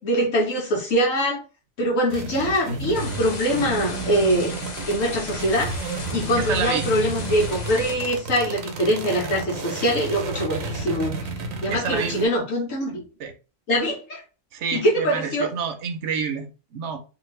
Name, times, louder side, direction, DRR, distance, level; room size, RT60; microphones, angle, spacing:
voice 1, 0.0-1.4 1.8-4.5 4.9-5.7 6.1-11.2 11.6-13.0 13.7-14.2 14.7-15.5, equal, 85° left, 1.4 m, -23 dB
sound 1, 2.1-12.3, right 3 dB, 90° right, 1.1 m, -32 dB
sound 2, 2.9-8.0, left 3 dB, 45° left, 0.6 m, -36 dB
voice 2, 6.4-6.9 11.7-12.2 13.2-13.3 14.5-17.0, right 5 dB, 65° right, 0.9 m, -28 dB
2.7 x 2.6 x 3.2 m
omnidirectional pair, 1.3 m